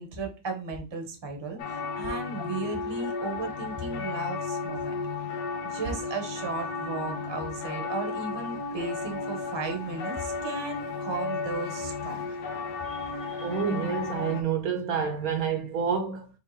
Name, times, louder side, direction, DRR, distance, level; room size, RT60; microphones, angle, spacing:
voice 1, 0.0-1.6 1.9-5.0 5.6-12.2, right 3 dB, 20° right, 0.8 m, -35 dB
sound 1, 1.6-14.4, left 4 dB, 85° left, 1.4 m, -34 dB
voice 2, 12.8-16.3, right 6 dB, 65° right, 1.1 m, -29 dB
4.4 x 3.4 x 3.2 m
omnidirectional pair, 1.8 m